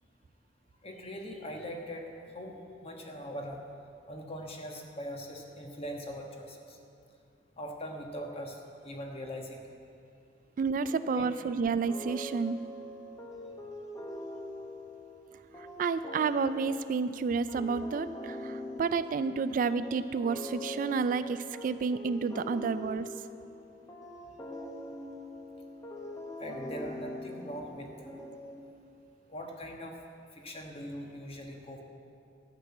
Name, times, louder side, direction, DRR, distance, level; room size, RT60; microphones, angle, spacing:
voice 1, 0.8-2.6 2.8-3.6 4.1-6.8 7.6-8.6 8.8-9.6 10.8-11.3 26.4-28.1 29.3-29.9 30.3-31.8, equal, 35° left, 2 dB, 1.3 m, -41 dB
voice 2, 10.6-12.6 15.6-23.1, right 5 dB, 50° right, 13 dB, 0.3 m, -30 dB
sound 1, 11.8-29.0, left 1 dB, 20° left, 0.9 m, -43 dB
12.5 x 6.1 x 8.5 m, 2.6 s
head